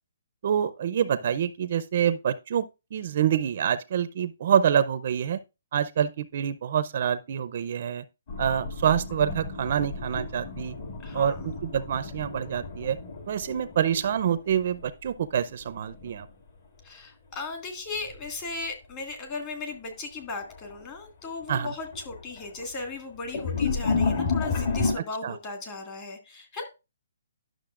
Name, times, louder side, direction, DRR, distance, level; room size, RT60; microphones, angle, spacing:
voice 1, 0.4-5.4 5.7-8.0 8.4-10.8 11.1-13.0 13.3-16.3 21.5-21.7 25.0-25.4, right 9 dB, 45° right, 0.5 m, -26 dB
sound 1, 8.3-15.1 15.4-16.3 18.0-18.3 18.8-18.9 19.9-20.0 20.4-20.8 21.2-24.9, left 4 dB, 40° left, 2.1 m, -32 dB
voice 2, 11.0-11.4 16.8-26.6, left 3 dB, 20° left, 1.8 m, -37 dB
11.5 x 6.3 x 2.5 m
hypercardioid pair, 170°, 0 cm